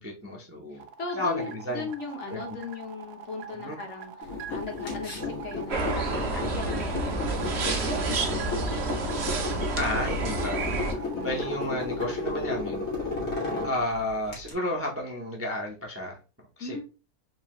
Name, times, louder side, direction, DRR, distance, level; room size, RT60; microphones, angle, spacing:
voice 1, 0.0-0.8 1.1-1.9 2.3-2.6 3.5-3.8 9.7-12.8 13.6-16.2 16.6-16.8, left 1 dB, 15° right, -1 dB, 0.5 m, -32 dB
sound 1, 0.8-12.1, right 9 dB, 85° right, 1.1 m, -43 dB
voice 2, 1.0-9.3 11.1-11.7 13.4-13.8 16.6-16.8, left 3 dB, 60° left, 3 dB, 1.2 m, -39 dB
sound 2, 4.2-14.5, left 3 dB, 85° left, 1.8 m, -34 dB
sound 3, 5.7-10.9, right 3 dB, 55° right, 1.0 m, -29 dB
3.9 x 2.8 x 3.0 m, 0.32 s
omnidirectional pair, 1.4 m